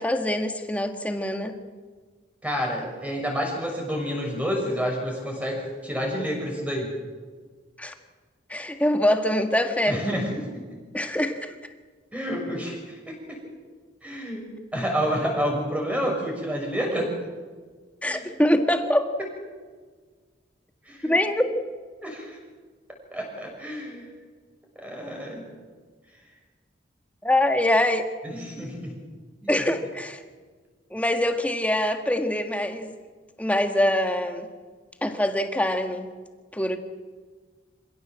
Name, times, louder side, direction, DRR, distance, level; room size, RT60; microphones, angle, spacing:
voice 1, 0.0-1.5 7.8-7.9 8.5-10.2 10.9-11.7 18.0-19.1 21.0-21.5 27.2-28.1 29.5-30.2 30.9-32.9 33.4-34.5 35.0-36.1 36.5-36.8, left 1 dB, 10° left, 5 dB, 1.7 m, -24 dB
voice 2, 2.4-6.9 9.9-10.8 12.1-13.4 14.0-17.1 18.0-18.2 20.8-21.2 22.0-22.4 23.1-24.1 24.8-25.4 28.2-28.9 29.4-29.6, equal, 10° right, 0 dB, 6.3 m, -29 dB
26.5 x 16.5 x 7.7 m, 1.5 s
head